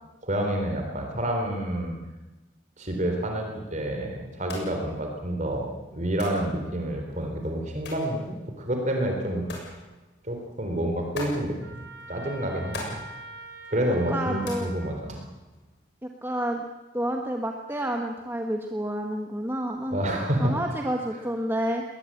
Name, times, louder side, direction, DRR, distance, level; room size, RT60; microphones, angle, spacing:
voice 1, 0.2-1.9 2.8-9.4 10.2-13.0 13.7-15.2 19.9-20.6, right 1 dB, 40° right, 3 dB, 3.7 m, -28 dB
sound 1, 4.3-15.8, left 2 dB, 60° left, 7.0 m, -45 dB
Trumpet, 11.6-15.0, right 2 dB, 55° right, 3.6 m, -43 dB
voice 2, 14.1-14.7 16.2-16.6 16.9-20.0 20.4-21.8, right 1 dB, 10° right, 3 dB, 1.4 m, -29 dB
20.5 x 20.5 x 8.6 m, 1.1 s
head